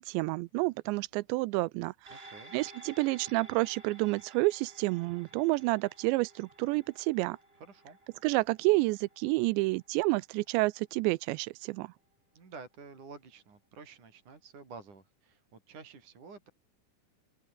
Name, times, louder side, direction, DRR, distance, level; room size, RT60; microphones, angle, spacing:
voice 1, 0.0-2.1 2.5-7.4 8.2-11.9, right 23 dB, 85° right, 2.6 m, -29 dB
sound 1, 2.1-10.7 11.1-11.2, right 1 dB, 10° right, 6.5 m, -55 dB
voice 2, 2.1-2.5 7.6-8.0 12.3-16.5, right 4 dB, 45° right, 6.0 m, -50 dB
open air
omnidirectional pair, 5.4 m